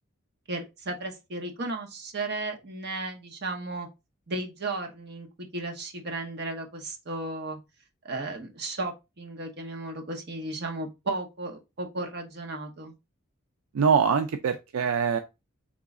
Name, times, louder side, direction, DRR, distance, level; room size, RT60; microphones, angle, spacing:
voice 1, 0.5-3.9 4.3-7.6 8.0-12.9, right 2 dB, 50° right, 1.0 m, -34 dB
voice 2, 13.7-15.2, right 6 dB, 80° right, 0.4 m, -23 dB
3.7 x 3.1 x 3.6 m
head